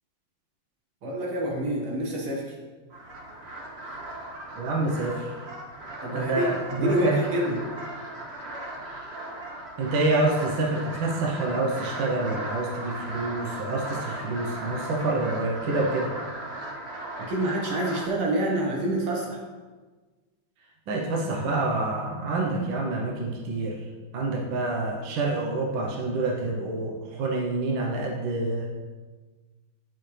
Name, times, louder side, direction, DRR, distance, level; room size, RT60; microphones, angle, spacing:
voice 1, 1.0-2.5 6.0-7.6 17.2-19.4, right 1 dB, 85° right, -2 dB, 2.4 m, -27 dB
sound 1, 2.9-18.1, right 1 dB, 40° right, 1.1 m, -37 dB
voice 2, 4.6-5.3 6.1-7.2 8.8-9.1 9.8-16.1 20.9-23.9 24.1-28.7, right 2 dB, 70° right, -1 dB, 1.6 m, -27 dB
11.0 x 4.7 x 3.3 m, 1.3 s
omnidirectional pair, 2.3 m